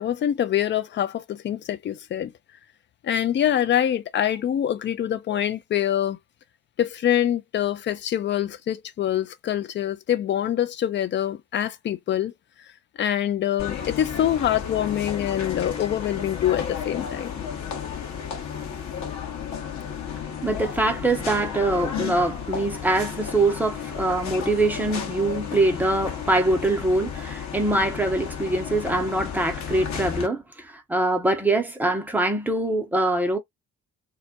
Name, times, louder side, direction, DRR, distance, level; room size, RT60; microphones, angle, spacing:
voice 1, 0.0-2.3 3.0-6.2 6.8-12.3 13.0-17.4, left 10 dB, 30° left, 0.4 m, -25 dB
sound 1, 13.6-30.3, left 7 dB, 45° left, 0.9 m, -33 dB
voice 2, 20.4-33.4, right 2 dB, 5° right, 0.7 m, -23 dB
2.3 x 2.0 x 2.8 m
figure-of-eight pair, 40°, 38 cm